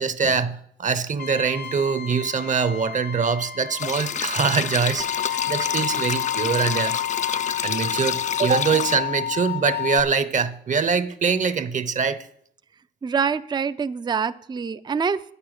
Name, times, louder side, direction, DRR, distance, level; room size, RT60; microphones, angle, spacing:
voice 1, 0.0-7.0 7.4-12.3, right 5 dB, 40° right, 0.8 m, -24 dB
Trumpet, 1.2-7.6, left 6 dB, 60° left, 1.0 m, -38 dB
sound 1, 3.8-9.0, left 7 dB, 35° left, 0.4 m, -29 dB
sound 2, 5.0-10.0, left 12 dB, 80° left, 0.9 m, -28 dB
voice 2, 13.0-15.3, right 6 dB, 20° right, 0.5 m, -25 dB
9.4 x 6.9 x 7.9 m
cardioid pair, 90°, 20 cm